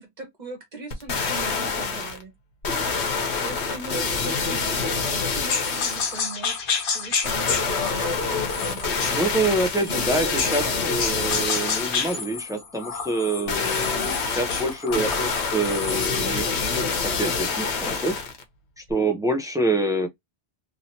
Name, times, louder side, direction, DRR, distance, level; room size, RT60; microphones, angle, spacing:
voice 1, 0.0-2.3 3.4-6.6 6.9-11.1, right 3 dB, 45° right, 1.3 m, -40 dB
sound 1, 0.9-2.2 2.6-6.2 7.2-12.2 13.5-18.4 18.9-19.0, left 4 dB, 85° left, 1.2 m, -26 dB
sound 2, 5.5-10.7 11.0-16.3, left 5 dB, 55° left, 0.8 m, -30 dB
voice 2, 9.0-18.2 18.8-20.1, right 2 dB, 5° right, 0.4 m, -26 dB
3.0 x 2.8 x 2.8 m
omnidirectional pair, 1.1 m